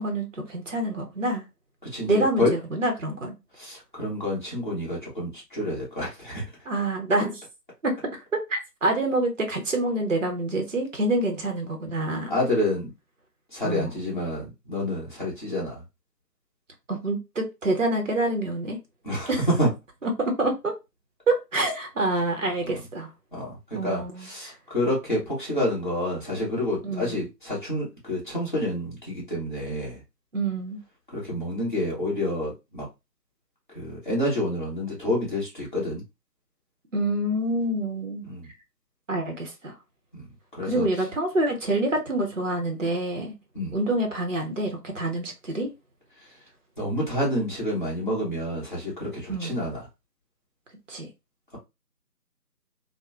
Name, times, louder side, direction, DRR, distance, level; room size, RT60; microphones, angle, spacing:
voice 1, 0.0-1.4 2.1-3.4 6.7-7.4 7.8-12.3 13.6-14.1 16.9-18.8 19.3-19.5 20.0-20.7 21.3-23.1 23.7-24.5 26.8-27.2 30.3-30.8 36.9-38.2 39.1-39.7 40.6-43.3 43.7-45.7 49.3-49.6 50.9-51.1, right 2 dB, 50° right, 0.7 m, -27 dB
voice 2, 1.8-2.5 3.6-6.4 12.3-12.9 13.5-15.8 19.0-19.7 23.3-30.0 31.1-32.9 33.7-36.0 38.2-38.5 40.1-40.9 43.5-43.8 46.8-49.9, left 1 dB, 30° left, 1.0 m, -28 dB
3.0 x 2.1 x 2.3 m
figure-of-eight pair, 160°, 49 cm